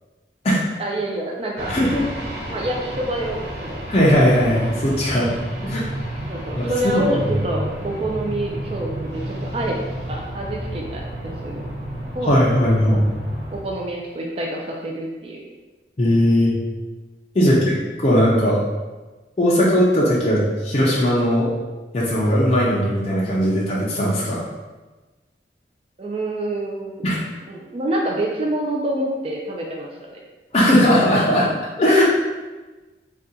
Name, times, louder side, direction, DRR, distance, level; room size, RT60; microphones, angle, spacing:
voice 1, 0.8-1.7 2.5-3.8 4.5-4.7 6.3-9.8 10.1-11.7 12.1-12.3 12.9-13.1 13.5-15.4 17.4-17.8 26.0-27.1 27.5-30.2 31.8-32.0, right 1 dB, 35° right, -2 dB, 0.4 m, -27 dB
sound 1, 1.6-13.6, right 1 dB, 75° right, 0.7 m, -31 dB
voice 2, 1.7-2.0 3.9-5.3 5.6-5.8 6.6-6.9 7.2-7.3 12.3-13.0 16.0-16.5 17.3-18.6 19.4-21.5 21.9-24.4 27.0-27.2 30.5-31.5 31.8-32.0, equal, 35° left, -6 dB, 0.5 m, -18 dB
2.7 x 2.3 x 3.7 m, 1.2 s
head